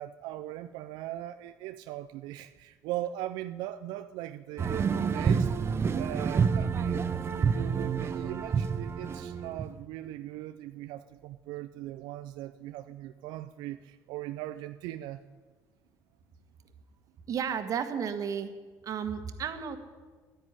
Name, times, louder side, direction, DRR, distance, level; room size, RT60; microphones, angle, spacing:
voice 1, 0.0-5.5 5.9-15.2, right 14 dB, 85° right, 9 dB, 0.5 m, -39 dB
sound 1, 4.6-9.7, right 6 dB, 35° right, 0.9 m, -28 dB
voice 2, 17.3-18.5 18.8-19.8, right 7 dB, 50° right, 8 dB, 1.5 m, -32 dB
12.0 x 10.5 x 9.8 m, 1.4 s
cardioid pair, 105°, 7 cm